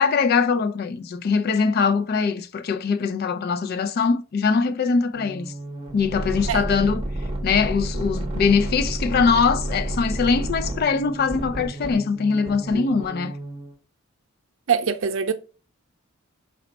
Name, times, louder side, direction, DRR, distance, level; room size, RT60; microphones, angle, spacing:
voice 1, 0.0-5.5 5.9-7.0 7.4-13.4, left 5 dB, 45° left, 0.3 m, -22 dB
sound 1, 5.1-13.7, right 1 dB, 25° right, 0.7 m, -30 dB
voice 2, 14.7-15.3, right 6 dB, 65° right, 0.5 m, -23 dB
4.1 x 2.1 x 3.9 m
head